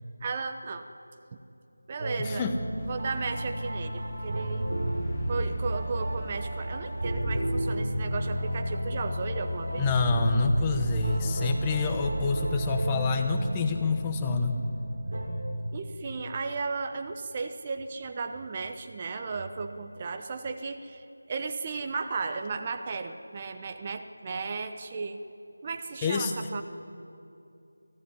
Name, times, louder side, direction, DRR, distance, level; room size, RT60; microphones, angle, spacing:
voice 1, 0.2-0.8 1.9-2.4 2.8-4.6 5.3-9.9 15.7-25.2 25.6-26.6, right 4 dB, 25° right, 7 dB, 1.0 m, -35 dB
sound 1, 2.0-15.3, right 1 dB, 55° right, 6.0 m, -32 dB
voice 2, 2.2-2.6 9.7-14.6 26.0-26.3, left 3 dB, 15° left, 5 dB, 1.0 m, -27 dB
sound 2, 2.8-12.5, left 2 dB, 30° left, 1.4 m, -42 dB
25.0 x 16.0 x 9.7 m, 2.7 s
figure-of-eight pair, 170°, 0 cm